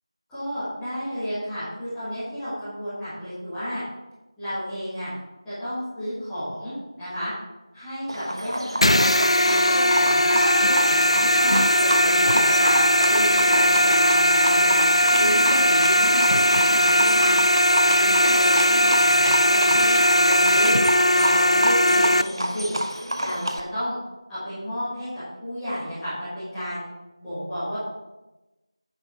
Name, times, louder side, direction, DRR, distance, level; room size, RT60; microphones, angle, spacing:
voice 1, 0.3-3.8 4.4-5.1 5.4-7.3 7.7-9.2 9.4-10.2 10.6-11.6 11.8-12.7 13.1-14.8 15.1-17.3 17.7-20.8 21.1-22.7 23.2-23.9 24.3-26.8 27.2-27.8, equal, ahead, -20 dB, 1.9 m, -32 dB
Livestock farm animals working animals, 8.1-23.6, right 1 dB, 55° right, 1.1 m, -29 dB
sound 1, 8.8-22.2, equal, 80° left, 0.5 m, -19 dB
10.0 x 6.6 x 4.6 m, 1.0 s
figure-of-eight pair, 175°, 3 cm